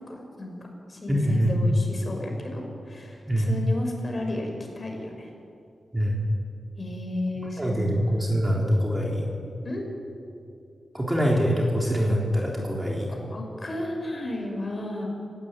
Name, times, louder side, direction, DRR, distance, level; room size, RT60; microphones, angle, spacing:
voice 1, 0.1-0.5 0.9-5.3 6.8-8.8 9.6-9.8 13.1-15.1, left 1 dB, 30° left, 2 dB, 5.9 m, -34 dB
voice 2, 1.1-1.8 3.3-3.5 5.9-6.2 7.4-9.3 10.9-13.1, equal, 15° right, -2 dB, 3.8 m, -24 dB
29.5 x 16.5 x 9.2 m, 2.5 s
wide cardioid pair, 125°, 0 cm